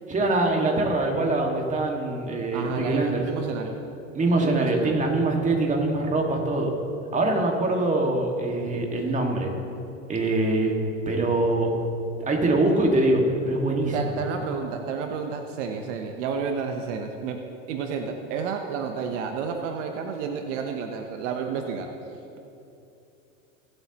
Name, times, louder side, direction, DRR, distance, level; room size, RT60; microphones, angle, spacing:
voice 1, 0.1-3.3 4.1-6.7 7.1-9.5 10.1-10.8 11.1-11.7 12.2-13.9, right 2 dB, 20° right, 1 dB, 1.9 m, -23 dB
voice 2, 2.5-3.7 4.4-5.0 13.9-17.4 17.7-21.9, right 6 dB, 65° right, 4 dB, 1.0 m, -31 dB
22.0 x 8.0 x 3.0 m, 2.8 s
hypercardioid pair, 105°, 39 cm